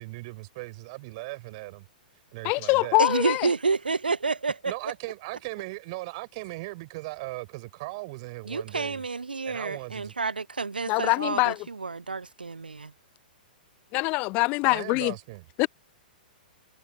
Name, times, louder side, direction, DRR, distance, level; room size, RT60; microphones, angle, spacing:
voice 1, 0.0-1.8 2.3-3.0 4.6-9.0 9.5-10.1 14.6-15.4, right 23 dB, 40° right, 4.6 m, -38 dB
voice 2, 2.4-3.5 10.9-11.6 13.9-15.1 15.6-15.7, left 26 dB, 30° left, 0.6 m, -24 dB
voice 3, 3.0-4.7 8.5-12.9, right 4 dB, 75° right, 0.5 m, -29 dB
figure-of-eight pair, 110°, 5 cm